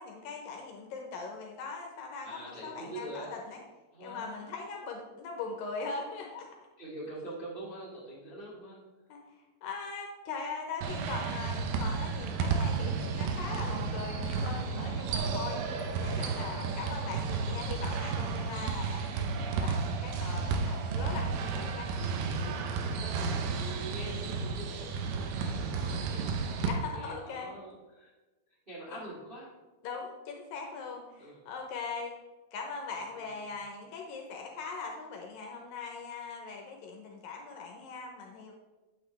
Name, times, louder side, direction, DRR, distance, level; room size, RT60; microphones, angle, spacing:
voice 1, 0.0-3.6 4.0-6.5 9.1-9.2 9.6-15.6 16.0-22.6 26.7-27.5 28.9-29.0 29.8-32.1 32.5-38.5, left 4 dB, 75° left, 1 dB, 2.4 m, -40 dB
voice 2, 2.2-3.3 3.9-4.5 6.8-8.8 17.6-17.9 22.4-28.1 28.7-29.5 31.2-31.4 32.9-33.6, right 1 dB, 20° right, -7 dB, 1.3 m, -45 dB
sound 1, 10.8-26.7, right 5 dB, 80° right, 2.6 m, -32 dB
8.5 x 8.2 x 3.3 m, 1.2 s
omnidirectional pair, 4.5 m